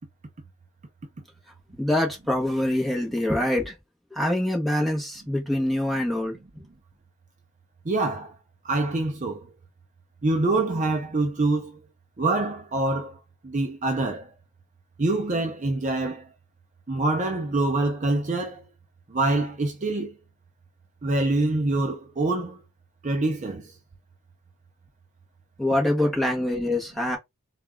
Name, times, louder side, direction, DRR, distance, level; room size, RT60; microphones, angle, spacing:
voice 1, 1.8-3.8 4.1-6.4 25.6-27.2, left 1 dB, ahead, 1.0 m, -25 dB
voice 2, 7.9-8.3 8.6-9.4 10.2-11.8 12.2-13.2 13.4-14.3 15.0-16.3 16.9-18.6 19.1-20.1 21.0-22.6 23.0-23.7, right 2 dB, 35° right, 0.5 m, -25 dB
3.8 x 2.4 x 3.5 m
head